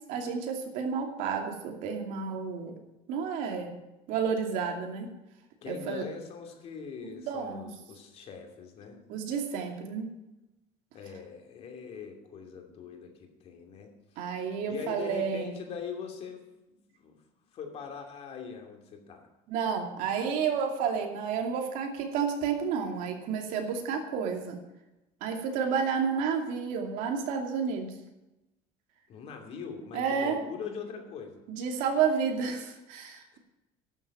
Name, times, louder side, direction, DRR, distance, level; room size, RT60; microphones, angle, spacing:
voice 1, 0.1-2.7 3.1-3.7 4.1-5.1 5.7-6.1 7.0-7.7 9.1-10.1 14.2-15.5 19.5-24.6 25.2-27.9 29.9-30.4 31.5-33.4, right 6 dB, 70° right, 3 dB, 2.5 m, -31 dB
voice 2, 5.6-9.0 10.9-14.3 14.7-16.5 16.9-17.2 17.5-19.3 29.1-31.4, left 6 dB, 50° left, 3 dB, 2.7 m, -42 dB
11.5 x 7.3 x 8.9 m, 0.97 s
cardioid pair, 140°, 14 cm